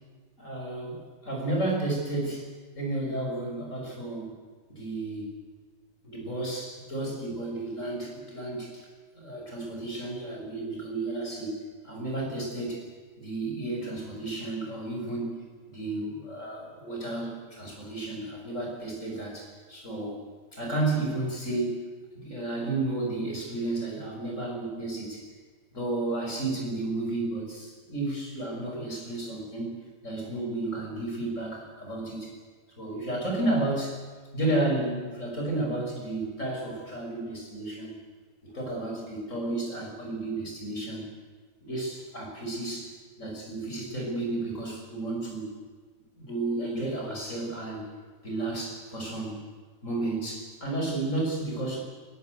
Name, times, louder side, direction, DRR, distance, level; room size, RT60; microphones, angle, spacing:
voice 1, 0.4-2.5 2.8-4.3 4.7-5.3 6.0-8.9 9.1-11.6 11.8-12.9 13.2-15.4 15.7-20.2 20.5-21.9 22.1-25.2 25.7-29.8 30.0-32.3 32.8-34.0 34.3-37.9 38.4-41.0 41.6-45.5 46.2-47.8 48.2-49.4 49.8-51.8, right 2 dB, 20° left, 0 dB, 6.3 m, -32 dB
30.0 x 17.5 x 8.2 m, 1.5 s
omnidirectional pair, 4.3 m